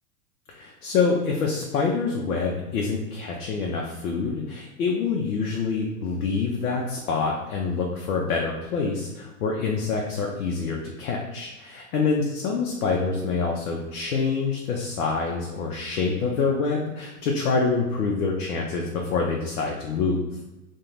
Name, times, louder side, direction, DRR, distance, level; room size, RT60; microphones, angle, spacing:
voice 1, 0.5-20.2, left 4 dB, 75° left, -1 dB, 0.6 m, -26 dB
2.4 x 2.2 x 3.0 m, 1.1 s
hypercardioid pair, 105°, 45 cm